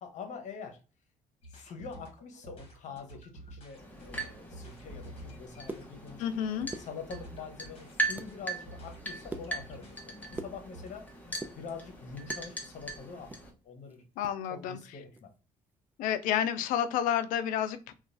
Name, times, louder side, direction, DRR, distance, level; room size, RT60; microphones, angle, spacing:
voice 1, 0.0-0.8 1.5-6.3 6.8-11.0 11.6-13.3 13.6-14.0 14.5-15.3, left 5 dB, 60° left, 5 dB, 0.9 m, -45 dB
sound 1, 1.4-10.9, right 1 dB, 45° left, 1.3 m, -50 dB
sound 2, 3.8-13.5, right 2 dB, 10° left, 0.9 m, -40 dB
sound 3, 5.4-6.4 6.6-7.4 7.8-8.4 8.7-11.0 11.3-12.5 12.9-14.4 14.7-14.8 15.1-15.4 15.7-16.0, right 2 dB, 15° right, 0.4 m, -44 dB
voice 2, 6.2-6.7 14.2-14.8 16.0-17.9, left 9 dB, 85° left, 12 dB, 0.4 m, -30 dB
3.0 x 2.3 x 2.5 m, 0.34 s
cardioid pair, 90°, 13 cm